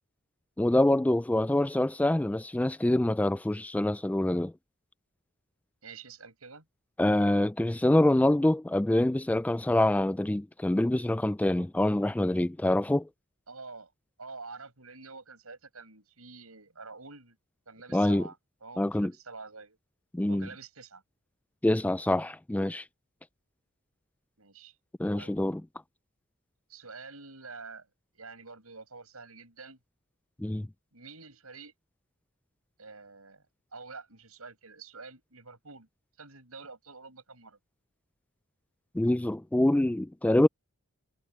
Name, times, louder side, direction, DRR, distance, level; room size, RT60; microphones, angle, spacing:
voice 1, 0.6-4.5 7.0-13.1 17.9-18.2 18.8-19.1 20.1-20.5 21.6-22.8 25.0-25.6 30.4-30.7 38.9-40.5, left 1 dB, 5° left, 0.3 m, -25 dB
voice 2, 5.8-6.7 13.5-13.9 14.2-17.4 17.7-18.4 18.6-19.8 20.3-21.0 24.4-24.7 25.1-25.4 26.7-27.9 28.1-29.8 30.9-31.7 32.8-33.4 33.7-35.9 36.2-37.6, right 4 dB, 85° right, 7.1 m, -47 dB
head